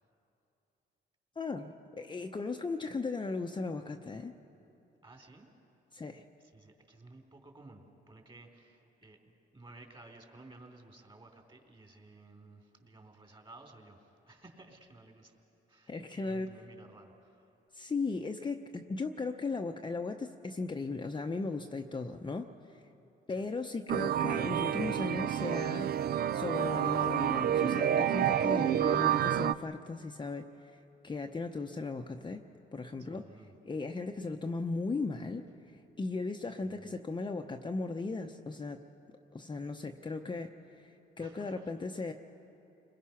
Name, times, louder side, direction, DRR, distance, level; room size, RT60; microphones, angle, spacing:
voice 1, 1.4-4.3 5.9-6.2 15.9-16.5 17.7-22.8 23.3-25.9 26.3-32.4 32.7-33.3 33.6-35.4 36.0-38.8 39.3-40.9 41.2-42.1, left 3 dB, 25° left, 3 dB, 0.8 m, -37 dB
voice 2, 5.0-5.5 6.4-15.3 15.7-17.5 23.3-23.5 33.0-33.6 36.7-36.9 41.2-41.8, right 2 dB, 25° right, 3 dB, 3.3 m, -55 dB
sound 1, 23.9-29.5, right 10 dB, 50° right, 0.4 m, -29 dB
29.5 x 21.0 x 5.8 m, 2.8 s
cardioid pair, 90°, 20 cm